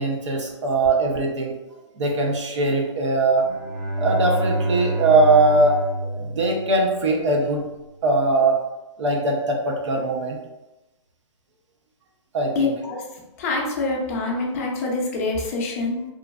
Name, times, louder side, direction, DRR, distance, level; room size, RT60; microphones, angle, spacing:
voice 1, 0.0-1.5 2.0-3.5 4.0-7.6 8.0-8.6 9.0-10.4 12.3-12.7, right 2 dB, 75° right, 1 dB, 0.7 m, -21 dB
Bowed string instrument, 3.3-7.3, right 1 dB, 25° right, 0.4 m, -27 dB
voice 2, 12.5-13.0 13.4-16.1, left 3 dB, 30° left, -1 dB, 0.5 m, -25 dB
3.1 x 2.4 x 2.2 m, 0.99 s
hypercardioid pair, 160°, 15 cm